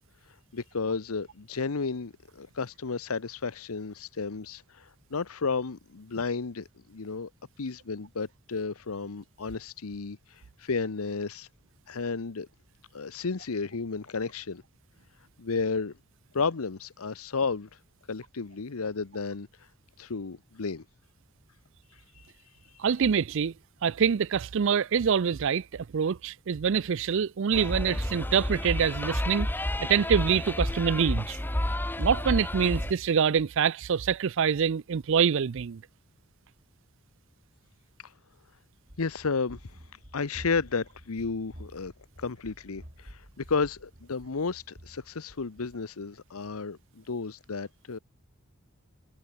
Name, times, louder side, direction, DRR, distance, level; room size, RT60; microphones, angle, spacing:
voice 1, 0.5-7.3 7.6-11.5 11.9-12.5 12.9-14.6 15.4-15.9 16.3-17.8 18.1-19.5 20.0-20.8 21.9-22.3 38.0-38.1 39.0-39.8 40.1-41.9 42.2-48.0, left 4 dB, 75° left, 0.8 m, -32 dB
voice 2, 22.8-23.5 23.8-29.5 29.9-31.4 32.0-35.8, right 7 dB, 60° right, 0.4 m, -25 dB
sound 1, 27.5-32.9, left 1 dB, 10° left, 0.8 m, -30 dB
Run, 38.8-45.8, equal, 40° right, 6.4 m, -50 dB
head